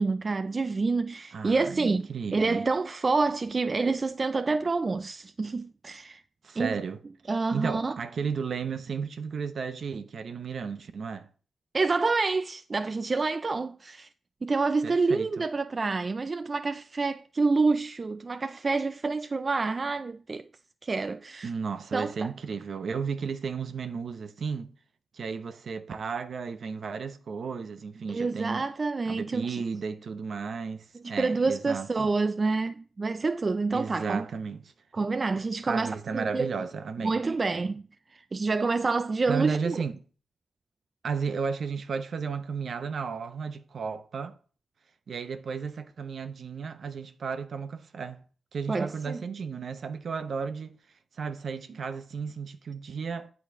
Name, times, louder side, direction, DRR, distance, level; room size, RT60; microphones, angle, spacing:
voice 1, 0.0-6.2 6.6-6.8 7.3-8.0 11.7-14.1 14.4-20.4 20.8-21.5 21.9-22.3 28.1-29.6 31.0-34.3 34.9-36.5 37.0-37.8 38.1-39.8 48.7-49.2, right 3 dB, 40° right, 0.4 m, -28 dB
voice 2, 1.3-2.6 6.4-7.0 7.5-11.3 14.8-15.4 21.4-24.7 25.1-28.7 29.0-32.1 33.7-34.7 35.7-37.2 39.3-40.0 41.0-44.3 45.1-48.2 48.5-50.8 51.1-53.3, right 5 dB, 65° right, 0.9 m, -34 dB
8.5 x 4.1 x 6.1 m
cardioid pair, 60°, 0 cm